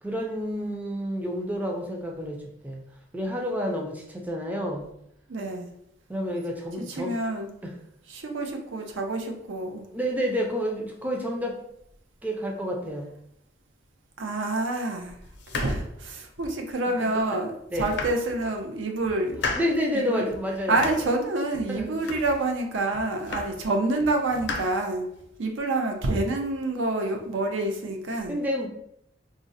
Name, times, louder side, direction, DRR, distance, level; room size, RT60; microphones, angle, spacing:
voice 1, 0.0-2.8 3.1-4.9 6.1-7.1 7.6-7.7 9.9-11.6 12.2-13.1 17.0-17.1 17.7-17.9 19.5-20.9 21.7-21.9 28.3-28.7, equal, 10° right, 0 dB, 0.4 m, -29 dB
voice 2, 5.3-5.7 6.9-7.5 8.1-9.9 14.2-15.2 15.5-19.4 19.9-20.2 20.7-25.1 25.4-28.4, right 2 dB, 85° right, 3 dB, 0.5 m, -27 dB
sound 1, 15.3-16.7 17.2-17.3 17.7-18.6 19.0-19.9 20.3-21.2 21.5-22.5 22.9-23.7 24.0-25.3, left 3 dB, 65° left, 0.5 m, -36 dB
3.7 x 2.0 x 2.6 m, 0.74 s
head